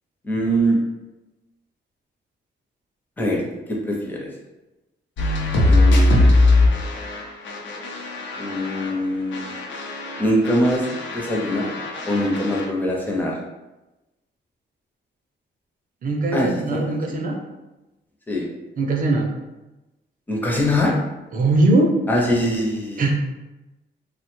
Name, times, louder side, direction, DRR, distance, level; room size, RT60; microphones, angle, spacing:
voice 1, 0.2-0.8 3.2-3.4 3.7-4.3 5.6-6.3 8.4-9.4 10.2-10.8 11.1-11.7 12.1-13.4 16.3-17.2 18.3-18.5 20.3-20.9 22.1-23.1, equal, 10° left, -2 dB, 0.5 m, -23 dB
sound 1, 5.2-9.0 9.3-12.7, left 2 dB, 75° left, 0.5 m, -21 dB
voice 2, 16.0-17.4 18.8-19.3 21.3-21.9 23.0-23.1, right 2 dB, 45° right, 1 dB, 0.5 m, -20 dB
3.0 x 2.1 x 2.9 m, 1.0 s
wide cardioid pair, 170°, 19 cm